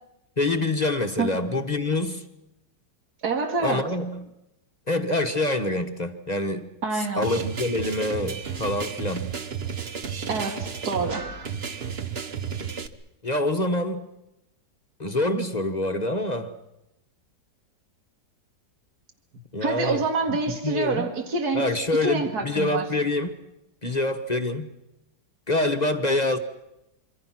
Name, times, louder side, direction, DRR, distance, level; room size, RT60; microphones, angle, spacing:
voice 1, 0.4-2.2 3.6-4.3 4.9-6.7 6.9-9.3 13.2-14.1 15.0-16.5 19.5-20.0 20.3-20.4 20.6-21.1 21.5-23.3 23.8-24.7 25.5-26.4, left 2 dB, 25° left, 1.1 m, -26 dB
voice 2, 3.2-3.9 6.8-7.3 10.3-11.3 19.6-21.7 22.0-22.9, right 4 dB, 60° right, 2.8 m, -26 dB
sound 1, 7.2-12.9, right 6 dB, 40° right, 1.1 m, -33 dB
26.0 x 25.5 x 6.0 m
omnidirectional pair, 1.9 m